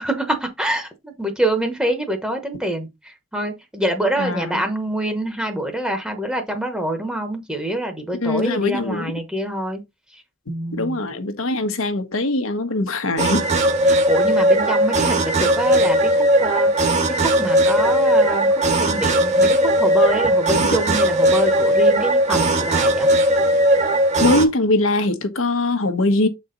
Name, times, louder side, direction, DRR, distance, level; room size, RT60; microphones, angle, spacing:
voice 1, 0.0-9.8 10.5-11.0 13.9-16.7 17.1-23.1, right 1 dB, 5° right, 0.9 m, -25 dB
voice 2, 4.2-4.6 8.2-9.1 10.8-13.5 24.2-26.3, left 2 dB, 80° left, 1.1 m, -21 dB
sound 1, 13.2-24.5, right 1 dB, 35° right, 1.1 m, -18 dB
7.0 x 4.3 x 3.9 m
head